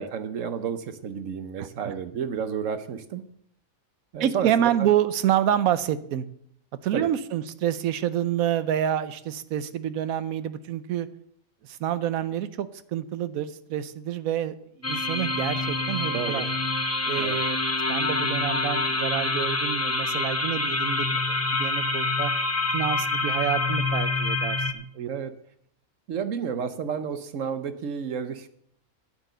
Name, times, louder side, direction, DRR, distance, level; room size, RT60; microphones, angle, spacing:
voice 1, 0.0-3.2 4.1-4.7 6.9-7.1 16.1-16.4 17.2-17.4 25.1-25.3 26.1-28.5, right 7 dB, 70° right, 10 dB, 1.2 m, -31 dB
voice 2, 1.6-1.9 4.2-6.2 6.8-11.1 11.6-14.5 14.9-16.4 17.1-17.6 17.9-21.2 21.5-22.3 22.7-25.1, right 10 dB, 90° right, 14 dB, 1.2 m, -28 dB
sound 1, 14.8-24.7, left 3 dB, 15° left, 0.7 m, -26 dB
9.7 x 9.1 x 6.7 m, 0.68 s
omnidirectional pair, 1.4 m